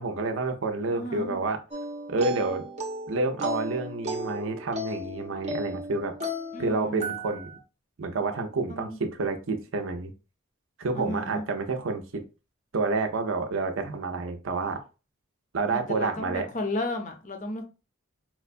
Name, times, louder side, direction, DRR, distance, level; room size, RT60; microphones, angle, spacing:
voice 1, 0.0-1.6 2.1-2.6 3.1-6.1 6.6-7.6 8.0-10.1 10.8-12.2 12.7-14.8 15.5-16.5, right 3 dB, 75° right, 6 dB, 0.6 m, -29 dB
voice 2, 0.9-1.4 6.5-7.2 8.7-9.0 10.9-11.4 15.7-17.6, left 1 dB, 40° left, 5 dB, 0.6 m, -33 dB
sound 1, 1.7-7.6, equal, 35° right, 0.6 m, -35 dB
4.4 x 2.2 x 2.5 m, 0.32 s
head